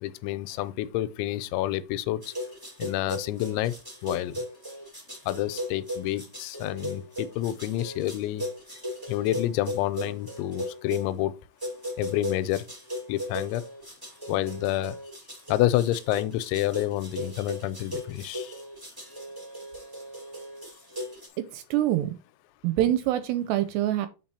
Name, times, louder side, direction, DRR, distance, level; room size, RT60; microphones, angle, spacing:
voice 1, 0.0-2.3 2.8-3.7 4.0-4.4 5.3-8.5 9.1-11.3 12.0-12.7 13.1-13.6 14.3-15.0 15.5-18.5, left 14 dB, 85° left, 2.9 m, -28 dB
sound 1, 2.2-11.1 11.6-21.3, equal, 10° right, 1.0 m, -37 dB
voice 2, 21.4-22.2 22.6-24.1, right 13 dB, 80° right, 2.6 m, -25 dB
7.9 x 4.6 x 4.2 m
omnidirectional pair, 5.3 m